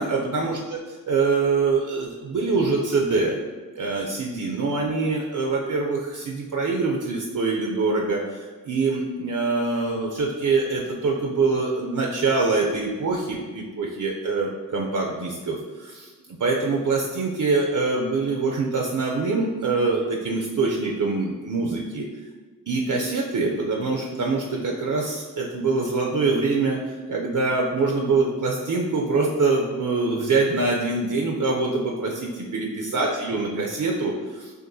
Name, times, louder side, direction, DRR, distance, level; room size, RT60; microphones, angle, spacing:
voice 1, 0.0-3.4 3.8-22.1 22.7-34.5, right 3 dB, 55° right, 0 dB, 0.5 m, -24 dB
6.4 x 2.5 x 2.6 m, 1.3 s
wide cardioid pair, 110°, 37 cm